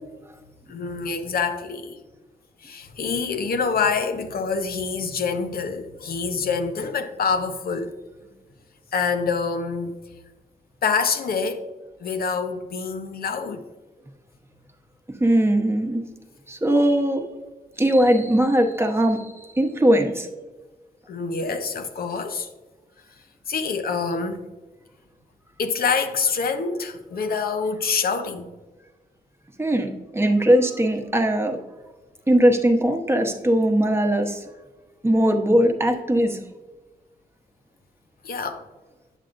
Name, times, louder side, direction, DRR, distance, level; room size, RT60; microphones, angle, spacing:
voice 1, 0.7-2.0 2.6-7.9 8.9-10.0 10.8-11.7 12.0-13.6 21.1-22.5 23.5-24.5 25.6-28.5 38.2-38.7, left 5 dB, 75° left, 0.8 m, -26 dB
voice 2, 15.2-16.0 16.5-17.2 17.8-19.3 19.6-20.3 29.6-31.6 32.3-34.4 35.0-36.4, right 1 dB, 15° right, 0.9 m, -20 dB
9.1 x 7.3 x 2.5 m
wide cardioid pair, 105°, 16 cm